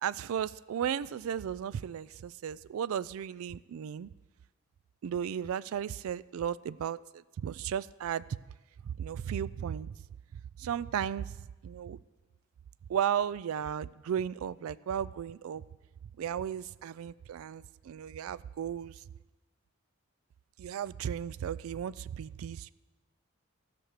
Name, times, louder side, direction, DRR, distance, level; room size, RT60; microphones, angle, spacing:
voice 1, 0.0-4.1 5.0-8.2 8.8-9.9 10.6-11.3 11.6-12.0 12.9-15.6 16.2-18.9 20.6-22.7, right 8 dB, 80° right, 18 dB, 0.3 m, -35 dB
13.0 x 6.1 x 6.6 m, 1.2 s
head